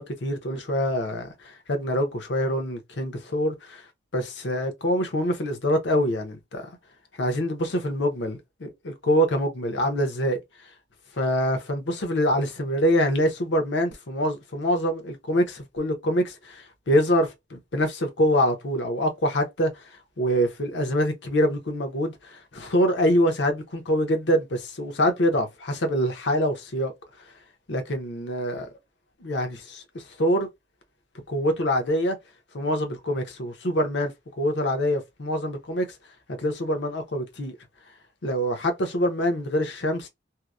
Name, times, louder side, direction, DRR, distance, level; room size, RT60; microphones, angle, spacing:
voice 1, 0.0-3.8 4.1-6.7 7.2-10.4 11.2-19.7 20.2-26.9 27.7-28.7 29.2-30.5 31.3-32.2 32.5-34.1 34.4-35.9 36.4-37.5 38.2-40.1, equal, 70° left, 0.7 m, -25 dB
2.7 x 2.0 x 2.3 m
head